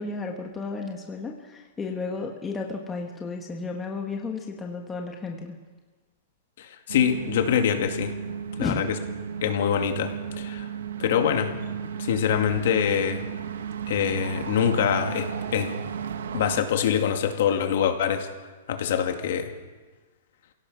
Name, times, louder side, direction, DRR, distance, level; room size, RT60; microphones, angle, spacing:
voice 1, 0.0-5.6 8.6-8.8, left 4 dB, 10° left, 1 dB, 1.2 m, -33 dB
voice 2, 6.6-8.1 8.6-9.0 9.4-10.7 11.0-11.6 12.0-13.2 13.9-15.7 16.3-18.3 18.7-19.5, left 8 dB, 55° left, 5 dB, 2.3 m, -24 dB
sound 1, 6.9-16.6, right 7 dB, 80° right, 1.2 m, -34 dB
28.0 x 17.0 x 5.6 m, 1.3 s
hypercardioid pair, 175°, 0 cm